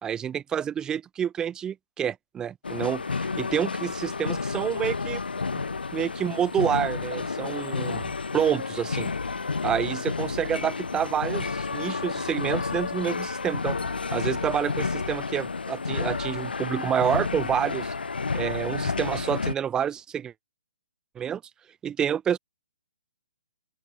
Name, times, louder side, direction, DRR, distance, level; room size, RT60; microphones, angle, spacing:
voice 1, 0.0-5.2 5.5-5.6 5.9-9.1 9.6-13.8 14.1-17.9 18.3-20.3 21.1-21.4 21.8-22.4, right 8 dB, 15° right, 2.8 m, -28 dB
sound 1, 2.6-19.5, left 4 dB, 75° left, 1.9 m, -30 dB
open air
figure-of-eight pair, 130°, 5 cm